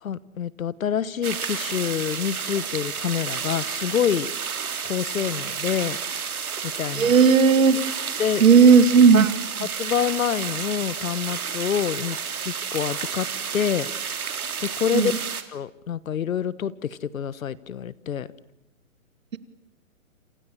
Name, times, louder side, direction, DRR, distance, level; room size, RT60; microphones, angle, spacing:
voice 1, 0.0-4.3 4.8-6.0 6.6-7.1 8.2-8.4 9.6-12.2 12.4-13.3 13.5-13.9 14.6-15.1 15.5-18.3, left 8 dB, 70° left, 19 dB, 1.3 m, -27 dB
sound 1, 1.2-15.4, right 6 dB, 85° right, 3.2 m, -31 dB
voice 2, 7.0-7.8 8.4-9.3 14.9-15.1, right 5 dB, 65° right, 13 dB, 2.3 m, -14 dB
29.5 x 27.5 x 7.3 m, 0.84 s
hypercardioid pair, 160°, 43 cm